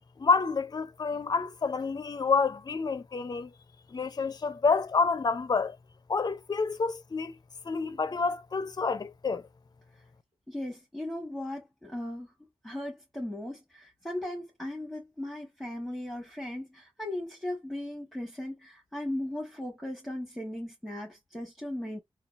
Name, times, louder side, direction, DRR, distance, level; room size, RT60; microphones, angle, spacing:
voice 1, 0.2-3.5 3.9-5.8 6.1-7.3 7.6-9.4, left 4 dB, 35° left, 0.4 m, -28 dB
voice 2, 10.5-22.0, left 1 dB, ahead, 1.1 m, -37 dB
3.8 x 2.3 x 2.4 m
wide cardioid pair, 75°, 12 cm